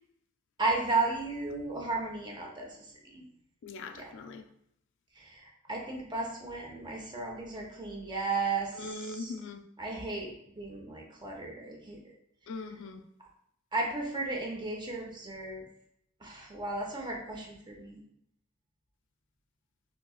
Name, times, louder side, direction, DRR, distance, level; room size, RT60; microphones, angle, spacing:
voice 1, 0.6-2.8 3.1-3.3 3.9-4.1 5.2-9.3 9.8-12.0 13.7-15.6 16.2-18.0, right 3 dB, 20° right, -1 dB, 0.7 m, -34 dB
voice 2, 3.6-4.5 8.8-9.6 12.5-13.0, left 3 dB, 60° left, 6 dB, 0.3 m, -41 dB
3.9 x 2.8 x 2.3 m, 0.72 s
head